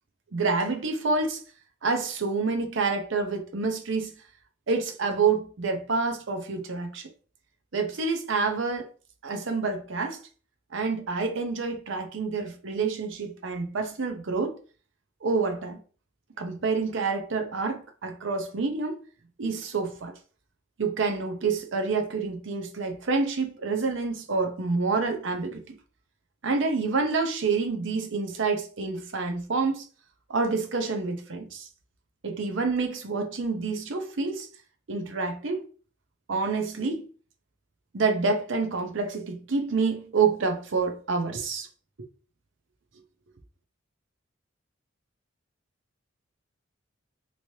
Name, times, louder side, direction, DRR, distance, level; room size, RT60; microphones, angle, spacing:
voice 1, 0.3-1.4 1.8-4.1 4.7-7.1 7.7-8.9 9.2-10.2 10.7-14.6 15.2-15.8 16.4-19.0 19.4-20.1 20.8-25.8 26.4-29.8 30.3-31.7 32.2-34.5 34.9-35.7 36.3-37.1 37.9-41.7, right 4 dB, 70° right, 0.6 m, -28 dB
3.1 x 3.0 x 2.7 m
head